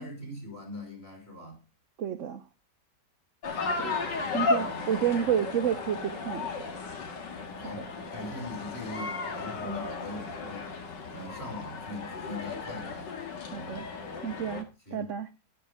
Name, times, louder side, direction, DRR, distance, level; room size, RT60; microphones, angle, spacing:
voice 1, 0.0-1.6 4.1-4.9 7.6-10.7 11.1-13.1 13.6-13.9 14.9-15.1, left 1 dB, 35° left, 5.1 m, -42 dB
voice 2, 2.0-2.4 3.8-3.9 4.3-6.5 9.6-9.9 13.5-13.9 14.2-15.3, right 9 dB, 60° right, 0.9 m, -30 dB
sound 1, 3.4-14.6, left 4 dB, 80° left, 2.3 m, -34 dB
12.0 x 10.5 x 3.5 m
omnidirectional pair, 1.9 m